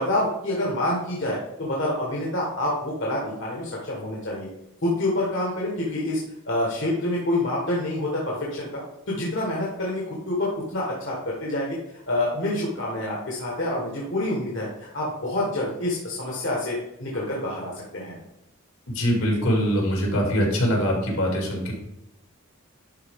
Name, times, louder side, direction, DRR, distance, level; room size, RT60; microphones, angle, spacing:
voice 1, 0.0-4.5 4.8-6.2 6.5-8.8 9.1-18.1, left 1 dB, 55° left, -4 dB, 1.5 m, -27 dB
voice 2, 18.9-21.7, equal, 75° left, 0 dB, 2.4 m, -23 dB
11.0 x 4.2 x 3.7 m, 0.83 s
head